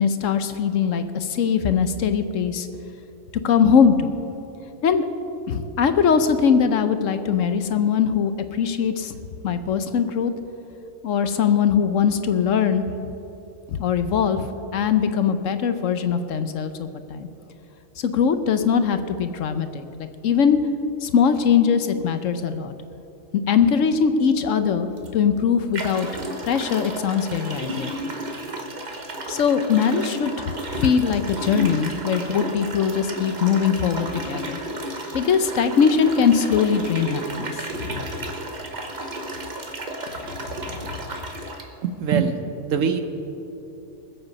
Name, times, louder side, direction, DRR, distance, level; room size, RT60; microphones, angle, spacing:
voice 1, 0.0-2.7 3.4-4.1 4.8-5.0 5.5-9.2 9.4-10.3 11.0-12.9 13.7-17.3 18.0-20.6 21.0-22.7 23.5-26.1 26.5-27.9 29.3-34.6 35.1-37.5 37.8-38.1 40.7-40.9, left 7 dB, 65° left, 10 dB, 1.0 m, -21 dB
sound 1, 25.0-25.1 25.7-41.7, right 1 dB, 35° right, 1.1 m, -33 dB
voice 2, 41.8-42.4 42.7-43.0, right 6 dB, 65° right, 9 dB, 1.1 m, -22 dB
20.5 x 8.1 x 5.2 m, 2.9 s
omnidirectional pair, 1.5 m